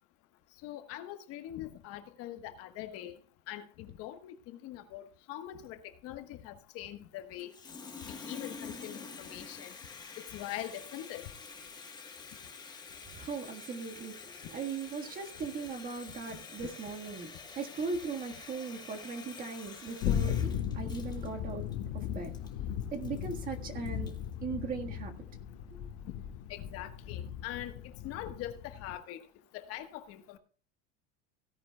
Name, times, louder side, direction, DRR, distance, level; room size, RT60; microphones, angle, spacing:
voice 1, 0.6-3.1 3.5-4.3 4.6-5.8 6.0-7.5 8.1-9.7 10.3-11.3 26.5-27.7 28.0-29.2 29.5-30.4, left 13 dB, 45° left, 1.3 m, -42 dB
Water tap faucet, 7.4-24.3, left 5 dB, 10° left, 1.2 m, -48 dB
voice 2, 13.1-14.1 14.5-21.6 22.1-22.3 22.9-24.1 24.4-25.2, right 5 dB, 25° right, 1.6 m, -38 dB
sound 1, 20.0-28.9, left 9 dB, 70° left, 1.9 m, -37 dB
17.0 x 10.5 x 2.3 m
cardioid pair, 170°, 33 cm